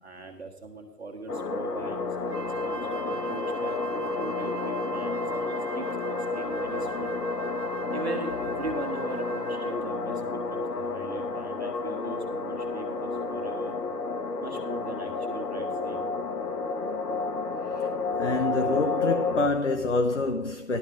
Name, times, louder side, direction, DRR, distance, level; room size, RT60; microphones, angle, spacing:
voice 1, 0.0-2.8 3.1-7.1 7.9-10.2 10.5-13.7 14.4-16.1, right 3 dB, 40° right, 1.6 m, -40 dB
sound 1, 1.3-19.5, left 4 dB, 75° left, 1.4 m, -31 dB
Wind instrument woodwind instrument, 2.3-9.9, right 5 dB, 80° right, 1.1 m, -39 dB
voice 2, 18.2-20.8, left 2 dB, 50° left, 0.8 m, -26 dB
14.0 x 12.5 x 3.6 m
hypercardioid pair, 180°, 48 cm